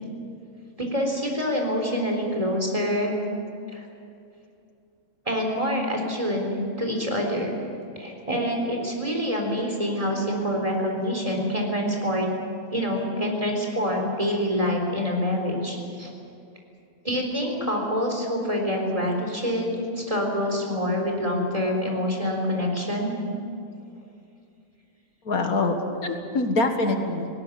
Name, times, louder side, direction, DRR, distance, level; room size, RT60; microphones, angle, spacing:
voice 1, 0.8-3.2 3.7-3.8 5.3-7.5 8.0-12.3 12.7-16.1 17.0-23.2, equal, 20° right, 0 dB, 4.0 m, -26 dB
voice 2, 25.2-27.3, left 2 dB, 75° left, 5 dB, 2.0 m, -24 dB
19.0 x 18.0 x 9.5 m, 2.5 s
omnidirectional pair, 1.6 m